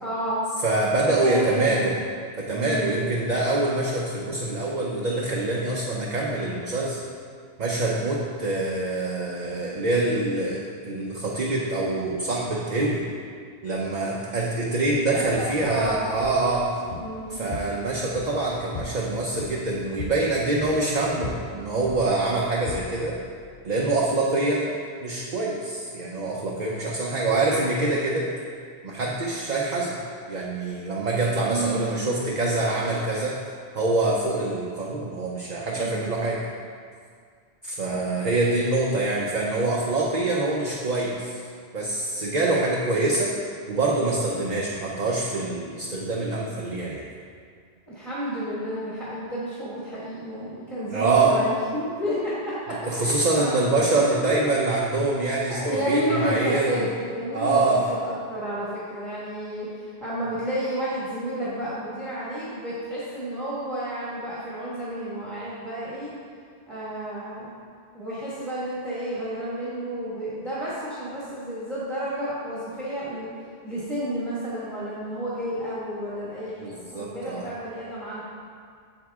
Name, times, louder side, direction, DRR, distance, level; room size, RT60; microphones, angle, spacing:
voice 1, 0.0-0.5 1.1-1.8 2.5-3.0 15.1-16.1 16.9-17.6 31.5-32.0 35.8-36.3 37.9-38.0 47.9-54.9 55.5-66.1 66.7-67.6 67.9-73.3 73.6-78.2, right 1 dB, ahead, -9 dB, 1.5 m, -31 dB
voice 2, 0.6-2.0 2.4-7.0 7.6-13.1 13.6-16.7 17.3-23.2 23.6-24.7 25.0-28.3 28.8-30.0 30.3-33.4 33.7-36.4 37.6-41.3 41.7-43.3 43.7-47.1 50.9-51.4 52.8-56.8 57.3-57.9 76.6-77.5, right 2 dB, 45° right, -3 dB, 0.8 m, -25 dB
sound 1, 15.2-23.9, left 4 dB, 55° left, 0.4 m, -40 dB
7.8 x 7.7 x 3.6 m, 2.1 s
omnidirectional pair, 1.1 m